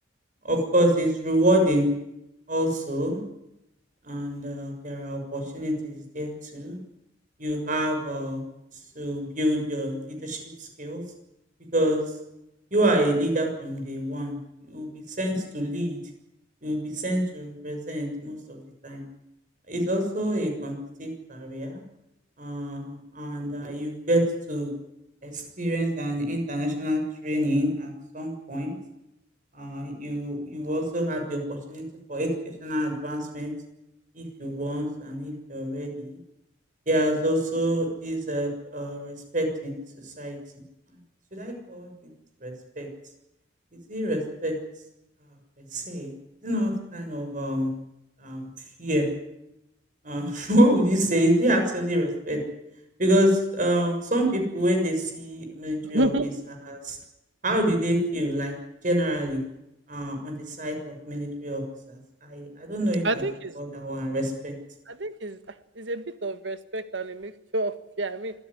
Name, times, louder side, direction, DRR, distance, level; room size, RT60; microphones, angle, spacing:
voice 1, 0.4-1.9 2.5-3.2 4.0-6.8 7.4-8.4 8.9-11.0 11.7-12.0 12.7-14.4 14.7-16.0 16.6-19.0 19.7-21.8 22.4-24.2 24.5-24.7 25.2-28.7 29.5-32.3 32.6-33.5 34.1-36.2 36.9-39.8 40.0-40.4 41.3-41.9 42.4-42.9 43.9-44.5 45.7-46.1 46.4-47.8 48.2-48.5 48.8-49.1 50.0-52.4 53.0-56.1 56.6-57.0 57.4-58.5 58.8-59.4 59.9-61.6 61.9-63.2 63.5-64.5, right 1 dB, 45° right, 4 dB, 6.7 m, -27 dB
voice 2, 55.9-56.3 63.0-63.6 64.9-65.4 65.8-68.3, right 1 dB, 75° right, 11 dB, 1.7 m, -29 dB
26.0 x 15.0 x 10.0 m, 0.88 s
head